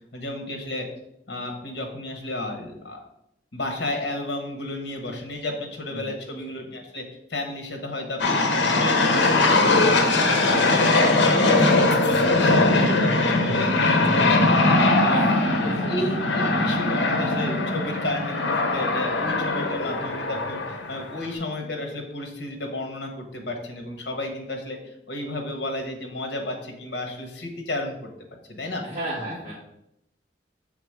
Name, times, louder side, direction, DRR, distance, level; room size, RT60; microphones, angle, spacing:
voice 1, 0.1-0.9 1.3-3.0 3.5-7.0 7.3-8.4 8.8-14.7 15.0-15.3 15.7-28.1 28.5-28.8 29.3-29.5, left 1 dB, 65° left, 3 dB, 1.2 m, -33 dB
sound 1, 8.2-21.3, left 2 dB, 85° left, 0.8 m, -21 dB
voice 2, 15.0-16.0 28.8-29.5, equal, 15° right, -12 dB, 2.4 m, -34 dB
5.9 x 3.8 x 4.9 m, 0.82 s
head